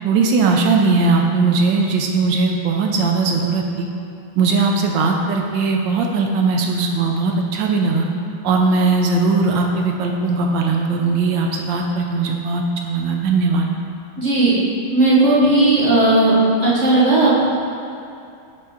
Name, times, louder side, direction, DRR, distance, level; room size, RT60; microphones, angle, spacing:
voice 1, 0.0-3.9 4.3-8.1 8.4-13.7, right 3 dB, 75° right, 2 dB, 1.1 m, -19 dB
voice 2, 14.2-14.5 14.9-16.3 16.6-17.4, right 2 dB, 40° right, -8 dB, 1.2 m, -15 dB
6.8 x 4.4 x 4.9 m, 2.5 s
omnidirectional pair, 2.4 m